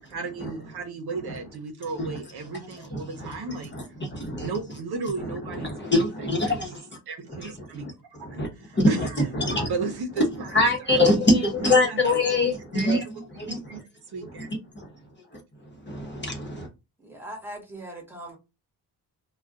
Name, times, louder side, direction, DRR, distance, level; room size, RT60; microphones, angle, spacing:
voice 1, 0.1-3.7 4.4-6.8 7.1-9.3 9.7-10.5 10.8-11.0 11.6-12.5 12.7-13.1 13.5-13.8 14.1-14.5, right 3 dB, 70° right, 0.8 m, -35 dB
voice 2, 2.9-3.4 3.7-4.5 5.5-6.8 7.3-7.9 8.3-8.5 8.7-9.1 9.3-9.7 10.5-13.0 13.4-13.8 14.4-14.5 14.7-14.9 15.8-16.7, left 2 dB, 25° left, 0.9 m, -24 dB
voice 3, 17.0-18.4, right 1 dB, 5° right, 1.1 m, -40 dB
2.4 x 2.3 x 3.5 m
wide cardioid pair, 130°, 39 cm